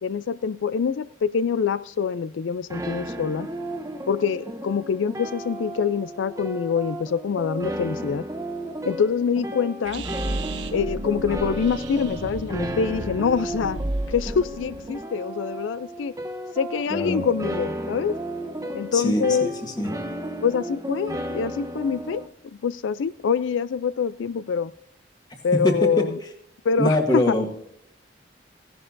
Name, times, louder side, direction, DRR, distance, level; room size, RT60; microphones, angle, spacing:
voice 1, 0.0-3.5 4.1-8.2 8.9-10.0 10.7-13.8 14.1-16.1 16.6-18.1 18.7-19.5 20.4-22.2 22.6-24.7 25.4-26.1 26.7-27.3, left 6 dB, 90° left, 16 dB, 0.4 m, -25 dB
sound 1, 2.7-22.3, right 1 dB, 15° right, 0.8 m, -34 dB
sound 2, 9.8-14.9, right 1 dB, 80° right, 1.1 m, -33 dB
voice 2, 16.9-17.3 18.9-20.0 25.6-26.0 26.8-27.5, left 1 dB, 20° left, 4 dB, 1.5 m, -23 dB
16.5 x 11.0 x 2.6 m, 0.75 s
head